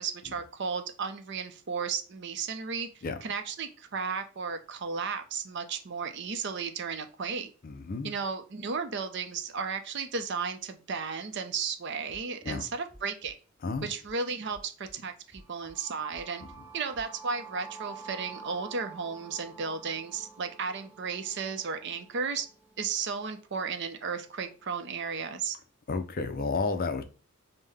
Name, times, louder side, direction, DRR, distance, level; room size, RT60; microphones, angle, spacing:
voice 1, 0.0-7.5 8.0-13.3 13.8-16.4 16.7-22.5 22.8-25.6, right 5 dB, 55° right, 0.6 m, -34 dB
voice 2, 7.6-8.1 12.4-12.7 13.6-13.9 25.9-27.0, left 4 dB, 45° left, 0.5 m, -31 dB
sound 1, 12.1-12.5 12.9-13.3 13.7-14.1 14.5-14.9 15.3-15.7 16.1-16.5 16.9-17.1, equal, 5° left, 2.2 m, -54 dB
sound 2, 15.4-23.3, right 5 dB, 10° right, 0.7 m, -49 dB
5.4 x 2.1 x 3.4 m
head